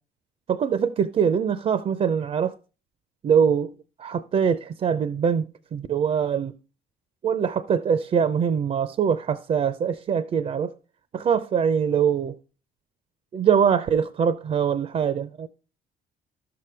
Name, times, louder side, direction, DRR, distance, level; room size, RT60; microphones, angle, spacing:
voice 1, 0.5-2.5 3.2-3.7 4.0-6.5 7.2-10.7 11.1-12.3 13.3-15.5, right 7 dB, 40° right, 0.5 m, -23 dB
12.0 x 6.8 x 3.3 m
cardioid pair, 110°, 17 cm